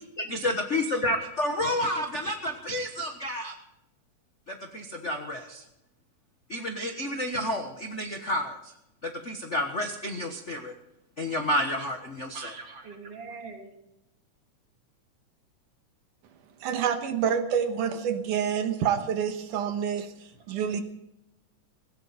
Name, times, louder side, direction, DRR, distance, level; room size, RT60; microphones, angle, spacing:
voice 1, 0.2-3.5 4.5-5.6 6.5-8.7 9.0-10.7 11.2-12.5, left 1 dB, 60° left, 4 dB, 0.7 m, -30 dB
voice 2, 12.3-13.7 19.5-19.6 20.6-20.7, right 4 dB, 50° right, 2 dB, 3.6 m, -42 dB
voice 3, 16.6-20.1 20.5-20.8, right 8 dB, 85° right, 7 dB, 2.7 m, -27 dB
18.0 x 16.5 x 4.2 m, 0.85 s
omnidirectional pair, 3.6 m